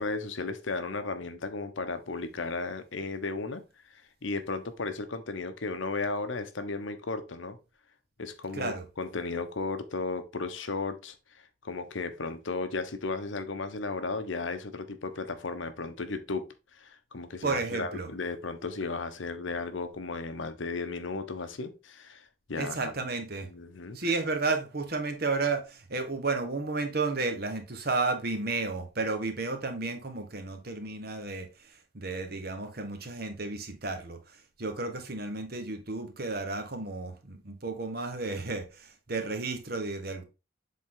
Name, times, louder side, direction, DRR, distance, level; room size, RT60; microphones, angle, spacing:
voice 1, 0.0-3.6 3.9-7.6 8.2-11.2 11.6-22.9 23.5-24.0, left 3 dB, 75° left, 0.9 m, -35 dB
voice 2, 8.5-8.8 17.4-18.1 22.5-23.5 23.9-40.2, right 3 dB, 50° right, 1.3 m, -32 dB
7.5 x 3.8 x 3.8 m
head